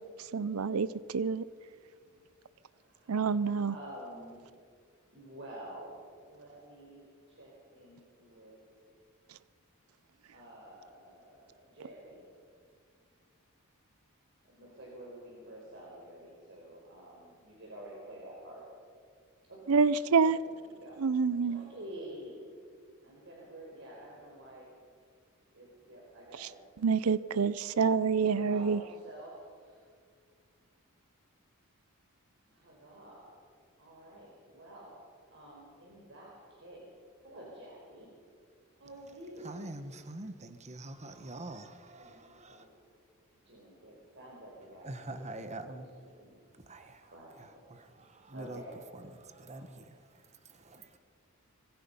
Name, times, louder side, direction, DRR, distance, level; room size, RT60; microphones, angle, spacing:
voice 1, 0.3-1.4 3.1-3.7 19.7-20.4 21.0-21.7 26.8-28.8, right 5 dB, 75° right, 17 dB, 0.5 m, -27 dB
voice 2, 2.8-3.4 3.7-4.4 5.1-6.0 6.2-8.6 10.3-12.2 14.5-18.6 19.5-19.6 20.2-21.0 21.4-22.4 23.0-24.7 25.5-26.6 28.3-29.9 32.5-33.3 33.8-35.0 35.3-36.9 37.2-38.1 38.8-39.5 41.9-42.7 43.4-45.8 46.2-46.7 47.0-47.6 48.3-48.7 49.5-49.6, right 1 dB, 55° right, -3 dB, 4.9 m, -49 dB
voice 3, 39.4-42.7 44.8-46.1 46.7-47.1 47.4-48.6 48.9-51.0, right 2 dB, 30° right, 8 dB, 1.2 m, -45 dB
25.0 x 21.5 x 5.5 m, 2.1 s
head